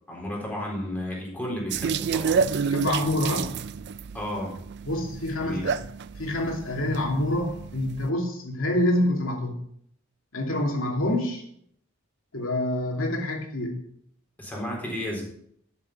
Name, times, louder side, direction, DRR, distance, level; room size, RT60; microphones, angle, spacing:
voice 1, 0.1-2.4 4.1-4.6 5.3-5.7 14.4-15.2, left 1 dB, 10° left, -3 dB, 4.0 m, -33 dB
sound 1, 1.7-8.1, right 5 dB, 55° right, 0.4 m, -30 dB
voice 2, 2.7-3.5 4.9-5.8 6.2-9.6 10.3-11.4 12.3-13.8, left 1 dB, 75° left, 1 dB, 2.7 m, -26 dB
12.0 x 7.4 x 5.6 m, 0.67 s
head